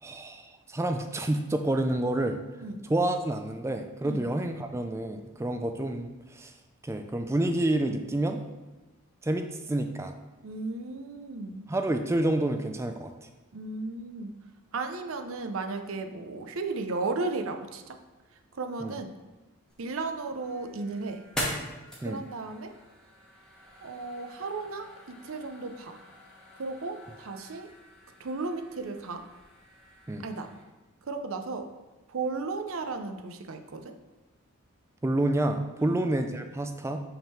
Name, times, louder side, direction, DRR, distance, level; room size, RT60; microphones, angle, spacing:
voice 1, 0.0-2.4 2.9-6.5 6.8-8.5 9.2-10.2 11.7-13.3 18.8-18.9 22.0-22.2 30.1-30.2 35.0-37.0, right 1 dB, 15° right, 6 dB, 0.3 m, -29 dB
voice 2, 10.4-11.6 13.5-14.3 14.7-18.0 18.5-19.1 19.8-21.2 22.0-22.7 23.8-26.0 26.6-27.7 28.2-29.2 30.2-30.5 31.0-31.7 32.1-33.9 35.8-36.0, right 3 dB, 75° right, 6 dB, 0.6 m, -35 dB
sound 1, 19.7-30.6, equal, 5° left, 1.1 m, -43 dB
5.6 x 3.6 x 5.7 m, 1.2 s
head